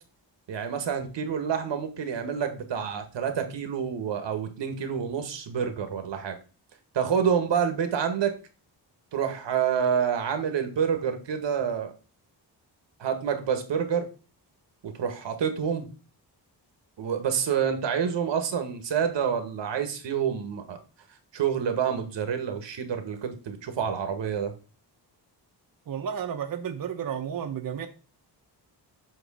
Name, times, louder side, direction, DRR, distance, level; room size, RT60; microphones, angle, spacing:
voice 1, 0.5-6.4 6.9-8.3 9.1-11.9 13.0-14.1 14.8-15.9 17.0-20.8 21.3-24.5, right 7 dB, 85° right, 7 dB, 1.5 m, -28 dB
voice 2, 25.9-27.9, right 8 dB, 50° right, 6 dB, 0.8 m, -32 dB
8.0 x 3.1 x 6.2 m, 0.34 s
wide cardioid pair, 140°, 42 cm